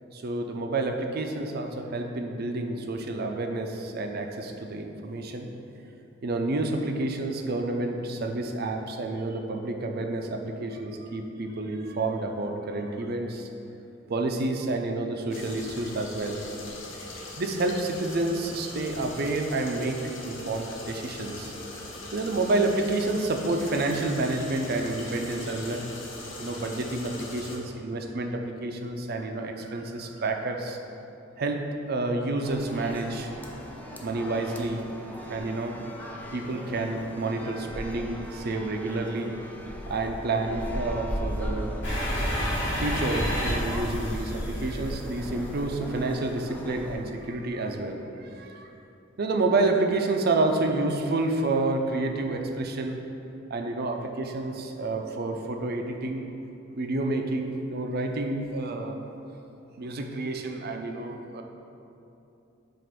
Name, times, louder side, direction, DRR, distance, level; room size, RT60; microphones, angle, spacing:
voice 1, 0.1-5.5 6.2-13.5 14.1-16.4 17.4-21.5 22.1-25.9 26.4-30.8 31.4-33.3 34.0-34.8 35.3-35.8 36.3-39.3 39.9-41.7 42.7-48.7 49.2-53.0 53.5-56.2 56.7-59.0 59.8-61.4, right 2 dB, 55° right, 4 dB, 0.5 m, -29 dB
sound 1, 15.3-27.6, left 2 dB, 85° left, 0.9 m, -41 dB
sound 2, 32.4-47.0, equal, 10° left, 0.5 m, -36 dB
sound 3, 41.8-45.7, equal, 65° left, 1.4 m, -31 dB
7.6 x 2.5 x 5.1 m, 2.8 s
head